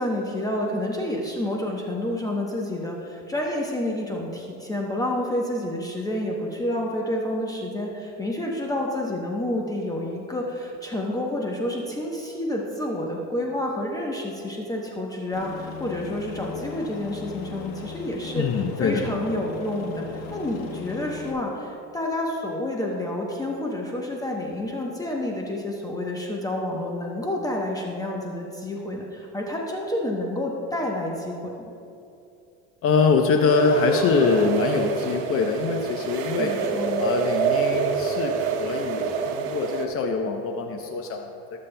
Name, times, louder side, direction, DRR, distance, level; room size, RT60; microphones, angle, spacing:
voice 1, 0.0-18.5 18.8-31.5 36.4-37.1, left 1 dB, 10° left, -1 dB, 0.9 m, -29 dB
Aircraft, 15.3-21.3, left 5 dB, 70° left, 1.4 m, -38 dB
voice 2, 18.4-19.1 32.8-36.6 37.0-41.6, left 5 dB, 45° left, 4 dB, 0.7 m, -24 dB
sound 1, 33.5-39.9, right 6 dB, 85° right, 0.9 m, -26 dB
16.5 x 7.3 x 2.2 m, 2.7 s
supercardioid pair, 115°, 32 cm